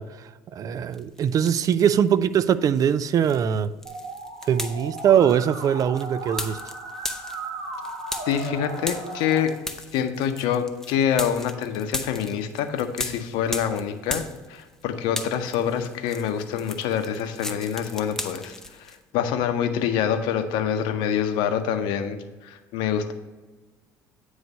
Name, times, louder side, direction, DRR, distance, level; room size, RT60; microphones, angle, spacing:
voice 1, 0.0-3.7 4.5-6.7, right 8 dB, 45° right, 15 dB, 0.4 m, -22 dB
sound 1, 0.9-2.1 2.4-14.8 15.1-19.0, left 1 dB, 5° left, 0.7 m, -36 dB
Musical instrument, 3.9-9.4, right 2 dB, 65° right, 2.0 m, -36 dB
voice 2, 8.3-9.5 9.9-23.1, left 8 dB, 75° left, 8 dB, 0.7 m, -26 dB
9.1 x 3.2 x 5.3 m, 1.2 s
hypercardioid pair, 70°, 8 cm